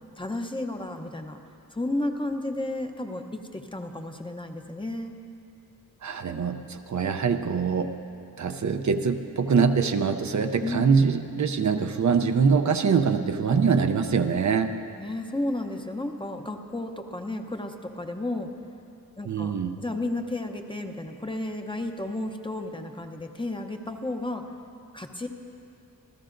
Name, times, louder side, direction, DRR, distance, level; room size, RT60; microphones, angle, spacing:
voice 1, 0.2-1.4 1.7-5.1 7.1-7.2 10.6-11.0 15.0-18.5 19.2-24.4 24.9-25.3, left 2 dB, 15° left, 4 dB, 0.7 m, -32 dB
voice 2, 6.0-7.9 8.4-14.7 19.3-19.8, right 5 dB, 55° right, 7 dB, 0.6 m, -24 dB
27.0 x 14.5 x 2.5 m, 2.6 s
wide cardioid pair, 135°, 35 cm